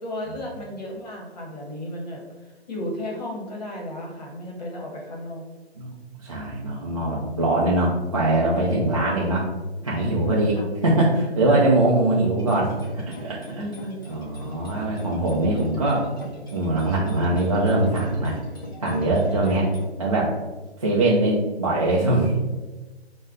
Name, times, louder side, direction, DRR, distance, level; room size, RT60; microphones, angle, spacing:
voice 1, 0.0-2.2 2.7-5.4 10.5-10.7 11.5-11.6 13.6-14.0 19.4-19.6, left 1 dB, 40° left, -2 dB, 1.0 m, -34 dB
voice 2, 6.2-9.5 9.8-10.6 10.8-13.6 14.1-16.1 16.5-18.4 18.8-19.6 20.0-20.3 20.8-22.5, right 2 dB, 35° right, -6 dB, 0.4 m, -22 dB
sound 1, 12.3-19.9, right 1 dB, 20° left, 0.5 m, -41 dB
4.8 x 2.2 x 3.6 m, 1.2 s
hypercardioid pair, 165°, 33 cm